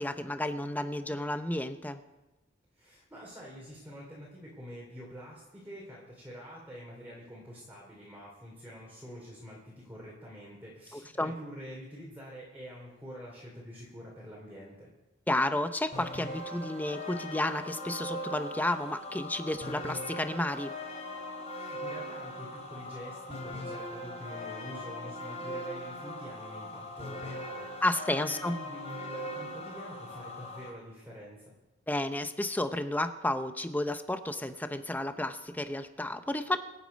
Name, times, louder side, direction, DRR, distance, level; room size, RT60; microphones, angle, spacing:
voice 1, 0.0-2.0 11.2-11.3 15.3-20.7 27.8-28.6 31.9-36.6, left 1 dB, 10° left, 9 dB, 0.8 m, -32 dB
voice 2, 2.7-14.9 21.5-31.5, equal, 10° right, -5 dB, 3.1 m, -46 dB
sound 1, 15.9-30.7, left 1 dB, 35° left, 2.9 m, -40 dB
25.5 x 8.5 x 5.3 m, 1.0 s
head